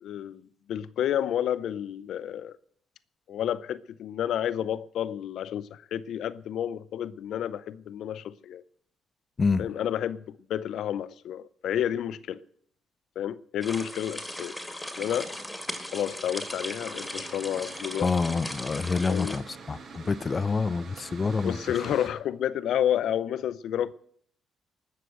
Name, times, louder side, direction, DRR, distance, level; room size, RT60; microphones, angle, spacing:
voice 1, 0.0-0.4 0.7-2.6 3.3-8.6 9.6-12.4 13.2-14.5 15.0-15.3 15.9-18.1 19.1-19.3 21.4-23.9, left 10 dB, 75° left, 0.6 m, -30 dB
voice 2, 9.4-9.7 18.0-21.6, left 4 dB, 35° left, 0.5 m, -27 dB
sound 1, 13.6-19.4, left 1 dB, 5° left, 2.2 m, -38 dB
Mechanical fan, 15.1-22.1, right 4 dB, 55° right, 2.1 m, -47 dB
19.5 x 6.7 x 7.7 m
cardioid pair, 90°, 0 cm